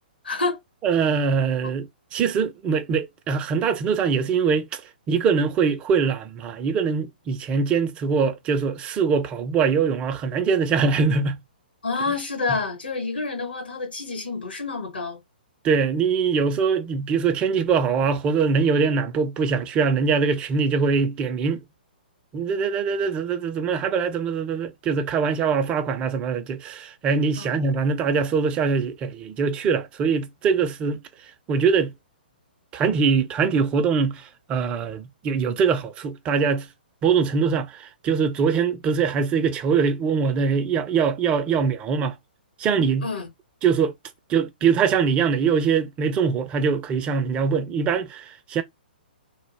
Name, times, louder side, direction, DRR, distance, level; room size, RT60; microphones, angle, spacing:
voice 1, 0.2-0.6 1.6-1.7 11.8-15.2 27.4-27.6 43.0-43.3, left 4 dB, 80° left, 1.0 m, -28 dB
voice 2, 0.8-4.8 5.1-11.4 15.6-21.6 22.3-31.0 31.5-31.9 32.7-36.7 37.0-42.2 42.6-43.1 43.6-43.9 44.3-48.6, right 5 dB, 20° right, 0.4 m, -23 dB
2.2 x 2.0 x 3.1 m
figure-of-eight pair, 120°, 5 cm